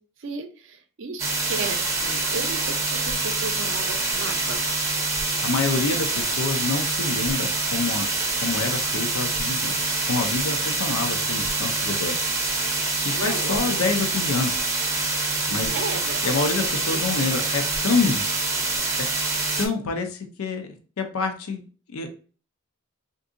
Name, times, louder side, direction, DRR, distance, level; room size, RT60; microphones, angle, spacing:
voice 1, 0.2-4.6 13.1-13.9 15.4-16.2 16.6-17.3, right 4 dB, 60° right, 7 dB, 0.5 m, -35 dB
sound 1, 1.2-19.7, right 3 dB, 15° right, 0.6 m, -25 dB
voice 2, 5.4-8.1 8.4-9.8 10.1-12.2 13.0-14.6 15.5-15.7 16.2-18.2 19.6-20.7 21.0-22.2, left 4 dB, 90° left, 7 dB, 0.5 m, -27 dB
3.5 x 2.6 x 2.5 m, 0.39 s
head